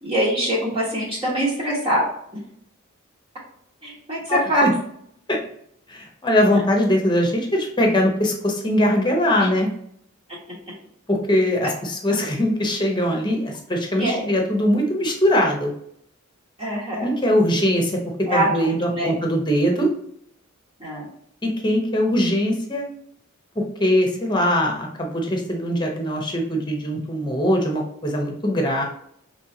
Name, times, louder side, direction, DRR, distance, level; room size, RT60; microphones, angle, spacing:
voice 1, 0.0-2.1 2.3-2.4 3.8-4.6 9.4-9.5 13.9-14.3 16.6-17.1 18.3-19.1 20.8-21.1, equal, 30° right, -7 dB, 1.3 m, -23 dB
voice 2, 4.3-4.7 5.3-5.4 5.9-9.7 11.1-15.7 17.0-19.9 21.4-22.8 23.5-28.8, equal, 20° left, 1 dB, 0.9 m, -21 dB
5.3 x 3.2 x 2.8 m, 0.70 s
head